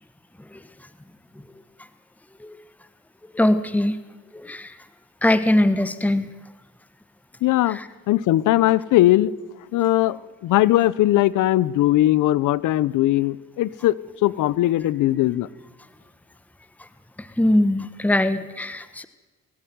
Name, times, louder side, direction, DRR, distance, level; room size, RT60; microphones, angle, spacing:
voice 1, 3.3-4.0 4.3-4.7 5.2-6.3 7.7-7.9 17.2-19.0, left 1 dB, 5° left, 12 dB, 1.3 m, -21 dB
voice 2, 7.4-7.8 8.1-9.3 9.7-13.9 14.2-15.5, left 15 dB, 85° left, 19 dB, 0.9 m, -19 dB
22.0 x 16.5 x 9.6 m, 1.3 s
cardioid pair, 90°, 30 cm